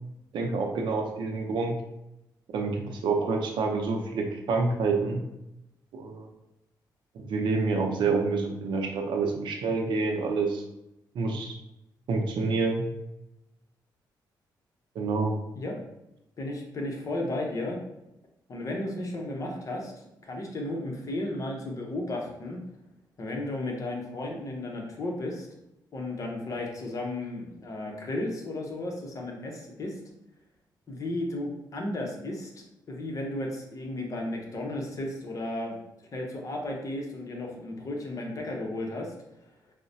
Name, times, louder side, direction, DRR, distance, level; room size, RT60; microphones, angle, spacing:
voice 1, 0.3-1.8 2.5-5.2 5.9-6.3 7.1-10.6 11.1-11.5 12.1-12.9 14.9-15.4, right 4 dB, 80° right, 2 dB, 0.5 m, -27 dB
voice 2, 16.4-17.8 18.5-19.9 20.2-22.6 23.2-25.5 25.9-30.0 30.9-35.8 36.1-39.1, left 1 dB, 45° left, -1 dB, 0.8 m, -34 dB
4.6 x 2.1 x 2.7 m, 0.88 s
cardioid pair, 110°, 8 cm